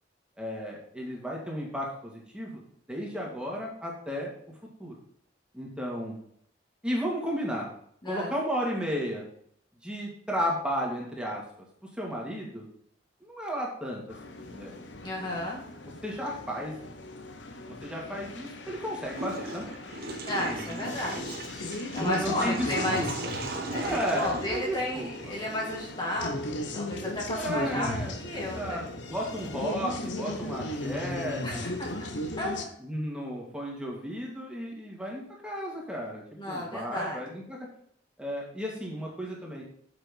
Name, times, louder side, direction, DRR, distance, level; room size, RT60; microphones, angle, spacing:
voice 1, 0.4-2.6 2.9-4.3 4.8-4.9 5.5-6.1 6.8-7.7 8.0-9.2 9.8-11.4 12.0-12.7 13.2-14.0 14.5-14.8 15.2-15.3 16.0-16.7 17.7-19.7 20.4-20.9 22.0-23.1 23.8-25.1 27.4-28.8 29.1-31.9 32.8-37.6 38.2-39.6, equal, 5° right, -3 dB, 2.2 m, -33 dB
sound 1, 14.1-32.7, left 1 dB, 90° left, 1.1 m, -37 dB
voice 2, 15.0-15.6 20.3-21.4 21.9-23.1 23.7-28.8 31.4-31.9 32.4-32.7 36.4-37.4, left 1 dB, 25° left, -2 dB, 1.7 m, -33 dB
Water / Toilet flush, 19.1-25.3, right 2 dB, 55° right, 1.3 m, -37 dB
7.4 x 5.8 x 5.4 m, 0.66 s
head